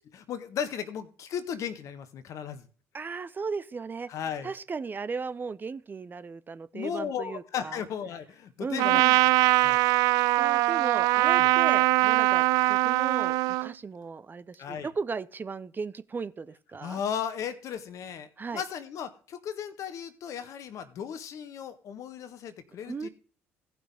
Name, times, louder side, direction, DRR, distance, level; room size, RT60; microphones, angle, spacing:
voice 1, 0.1-2.7 4.1-4.5 6.7-9.0 9.6-9.8 11.4-11.5 14.6-14.9 16.8-23.1, left 8 dB, 55° left, 1.5 m, -36 dB
voice 2, 2.9-4.1 4.4-7.8 8.6-9.2 10.4-17.0 18.4-18.6 22.8-23.1, right 5 dB, 30° right, 0.8 m, -36 dB
Trumpet, 8.8-13.7, right 19 dB, 65° right, 0.4 m, -22 dB
17.5 x 6.1 x 3.6 m
hypercardioid pair, 55°, 7 cm